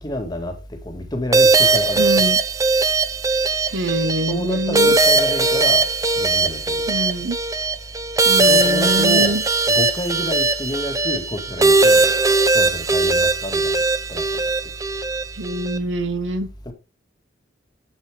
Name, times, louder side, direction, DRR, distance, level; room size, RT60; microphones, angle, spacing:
voice 1, 0.0-2.3 4.3-5.9 6.2-7.0 8.4-9.4 9.7-12.1 12.5-13.8 14.1-14.4 16.7-16.8, left 1 dB, 20° left, 4 dB, 1.8 m, -29 dB
sound 1, 1.3-15.8, right 3 dB, 15° right, 0.7 m, -19 dB
voice 2, 2.0-2.4 3.7-5.0 6.9-7.4 8.2-9.4 15.4-16.5, right 1 dB, 75° right, 11 dB, 1.1 m, -24 dB
8.3 x 8.3 x 3.4 m, 0.26 s
head